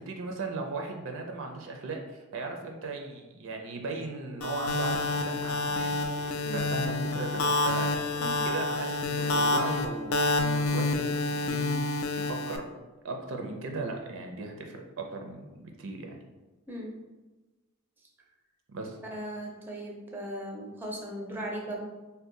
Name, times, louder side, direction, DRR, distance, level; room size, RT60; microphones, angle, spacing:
voice 1, 0.0-8.2 8.4-12.7 13.0-16.2 18.7-19.0, right 3 dB, 65° right, 2 dB, 0.5 m, -37 dB
sound 1, 4.4-12.6, left 2 dB, 80° left, 0.4 m, -28 dB
voice 2, 6.4-6.8 8.2-8.4 16.7-17.0 19.1-21.9, right 1 dB, 10° right, -2 dB, 0.5 m, -38 dB
2.6 x 2.2 x 3.7 m, 1.1 s
head